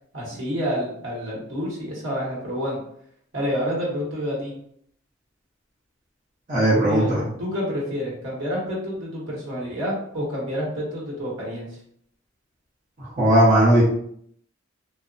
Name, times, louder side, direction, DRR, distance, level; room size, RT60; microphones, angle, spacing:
voice 1, 0.1-2.8 3.3-4.5 6.8-7.1 7.4-11.8, equal, 80° right, -5 dB, 0.9 m, -28 dB
voice 2, 6.5-7.2 13.2-13.8, right 1 dB, 40° right, -8 dB, 0.8 m, -17 dB
2.8 x 2.0 x 2.5 m, 0.68 s
head